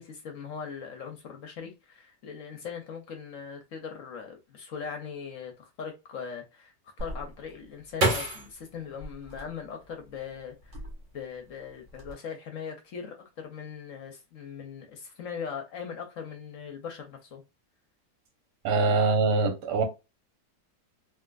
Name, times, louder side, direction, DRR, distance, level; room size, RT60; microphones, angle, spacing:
voice 1, 0.0-6.7 7.0-10.8 11.1-17.4, left 6 dB, 60° left, 0.9 m, -40 dB
sound 1, 7.0-10.1 10.6-11.3 11.7-12.1, right 1 dB, 50° right, 1.3 m, -31 dB
voice 2, 18.6-19.8, right 3 dB, 80° right, 1.4 m, -23 dB
3.5 x 2.5 x 2.3 m
omnidirectional pair, 1.8 m